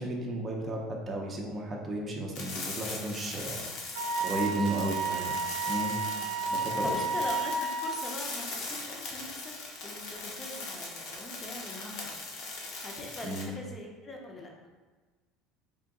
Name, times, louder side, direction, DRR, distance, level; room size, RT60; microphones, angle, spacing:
voice 1, 0.0-3.7 4.2-5.3 5.7-6.0 6.5-7.0 13.2-13.5, right 1 dB, 25° right, -2 dB, 0.6 m, -33 dB
sound 1, 2.4-13.4, left 3 dB, 65° left, 0.8 m, -40 dB
Wind instrument woodwind instrument, 3.9-7.9, right 3 dB, 90° right, 0.4 m, -32 dB
voice 2, 4.5-5.0 6.1-9.5 9.8-12.3 12.8-14.5, left 2 dB, 20° left, 0 dB, 0.7 m, -43 dB
3.7 x 2.5 x 3.7 m, 1.3 s
cardioid pair, 130°, 0 cm